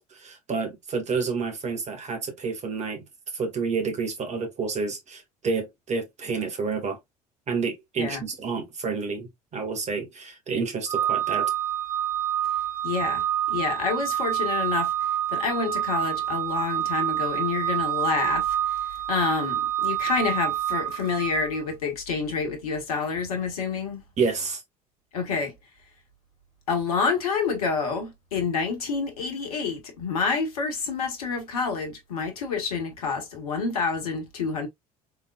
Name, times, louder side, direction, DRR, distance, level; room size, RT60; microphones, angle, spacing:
voice 1, 0.0-3.0 3.3-7.0 7.5-11.5 24.2-24.6, right 5 dB, 35° right, 1.7 m, -29 dB
Organ, 10.9-21.6, right 11 dB, 75° right, 1.4 m, -27 dB
voice 2, 12.8-14.9 15.3-18.8 19.1-24.0 25.1-25.5 26.7-34.7, left 5 dB, 75° left, 1.3 m, -28 dB
3.8 x 3.7 x 2.3 m
figure-of-eight pair, 60°, 19 cm